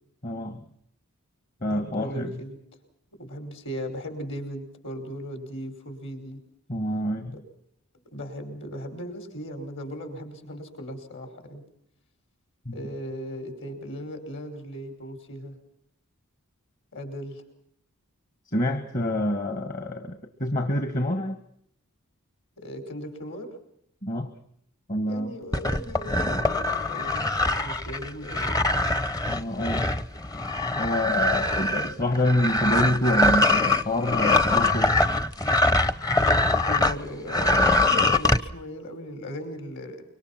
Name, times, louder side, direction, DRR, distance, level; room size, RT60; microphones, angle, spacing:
voice 1, 0.2-0.6 1.6-2.4 6.7-7.4 12.7-12.8 18.5-21.4 24.0-24.3 24.9-25.3 29.3-29.9 30.8-35.1, left 1 dB, 40° left, 1.8 m, -27 dB
voice 2, 1.7-2.6 3.1-6.4 7.3-7.4 8.1-11.6 12.7-15.6 16.9-17.4 22.6-23.6 25.0-28.7 36.4-40.0, equal, 60° left, 5.3 m, -37 dB
sound 1, 25.5-37.0 37.3-38.4, left 2 dB, 15° left, 0.9 m, -23 dB
25.5 x 24.0 x 6.0 m
head